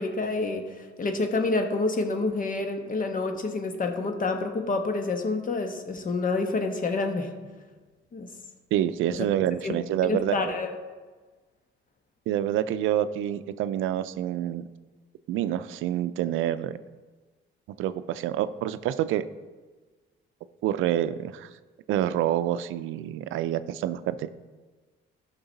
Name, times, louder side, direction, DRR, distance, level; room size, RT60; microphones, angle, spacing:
voice 1, 0.0-7.3 8.1-8.3 9.1-9.2 9.6-9.8 10.0-10.7, left 3 dB, 45° left, 5 dB, 1.2 m, -28 dB
voice 2, 8.7-10.5 12.3-14.6 15.3-16.7 17.8-19.2 20.6-21.5 21.9-24.3, right 11 dB, 90° right, 13 dB, 0.5 m, -27 dB
13.0 x 6.0 x 4.0 m, 1.3 s
cardioid pair, 90°, 20 cm